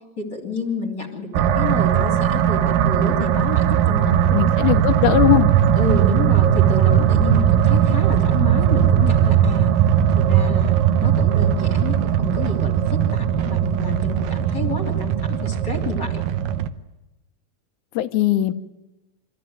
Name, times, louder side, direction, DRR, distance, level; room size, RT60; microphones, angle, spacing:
voice 1, 0.2-4.4 5.0-5.1 5.7-9.7 10.1-10.8 11.0-16.2, left 3 dB, 30° left, 3 dB, 3.3 m, -29 dB
sound 1, 1.3-16.7, right 10 dB, 75° right, 2.4 m, -18 dB
voice 2, 4.0-5.5 17.9-18.5, left 13 dB, 70° left, 9 dB, 2.0 m, -19 dB
26.5 x 14.5 x 9.4 m, 1.0 s
omnidirectional pair, 4.4 m